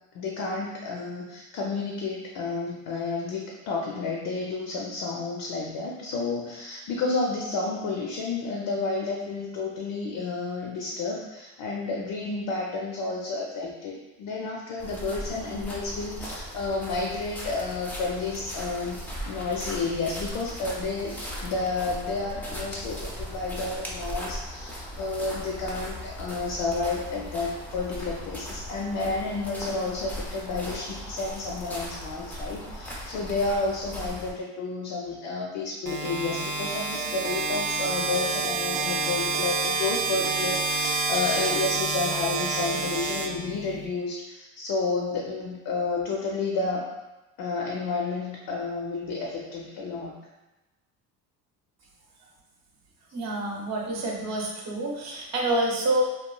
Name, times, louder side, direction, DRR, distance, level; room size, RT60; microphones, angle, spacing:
voice 1, 0.1-21.1 21.4-46.9 47.4-50.2, left 3 dB, 65° left, -1 dB, 0.5 m, -31 dB
sound 1, 14.8-34.3, equal, 5° left, 0.4 m, -38 dB
sound 2, 35.9-43.9, right 4 dB, 85° right, 0.5 m, -28 dB
voice 2, 53.1-56.0, right 1 dB, 45° right, -1 dB, 0.6 m, -27 dB
3.0 x 2.2 x 2.2 m, 1.0 s
cardioid pair, 105°, 36 cm